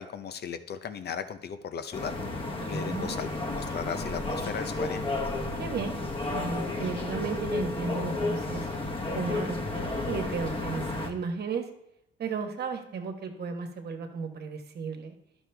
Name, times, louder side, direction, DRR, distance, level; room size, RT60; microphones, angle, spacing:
voice 1, 0.0-2.1 2.7-5.1, left 7 dB, 55° left, 10 dB, 0.8 m, -36 dB
sound 1, 1.9-11.1, left 2 dB, 25° left, 1.3 m, -32 dB
voice 2, 2.6-3.3 5.6-6.0 6.3-8.7 9.1-11.7 12.2-15.2, right 5 dB, 55° right, 5 dB, 1.3 m, -34 dB
11.0 x 6.3 x 3.4 m, 0.85 s
cardioid pair, 90°, 20 cm